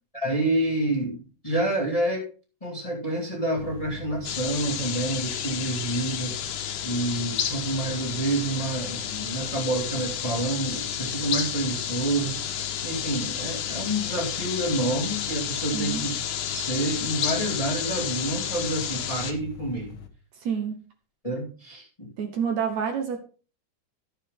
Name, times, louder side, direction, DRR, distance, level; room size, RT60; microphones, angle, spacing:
voice 1, 0.1-2.3 2.6-16.1 16.5-20.0 21.2-22.1, right 2 dB, 15° left, -1 dB, 1.9 m, -28 dB
sound 1, 3.6-20.1, left 10 dB, 60° left, 1.4 m, -42 dB
sound 2, 4.2-19.3, left 9 dB, 75° left, 2.3 m, -31 dB
voice 2, 20.4-20.8 22.2-23.2, right 7 dB, 65° right, 4 dB, 2.3 m, -28 dB
13.0 x 7.0 x 3.7 m, 0.36 s
omnidirectional pair, 3.7 m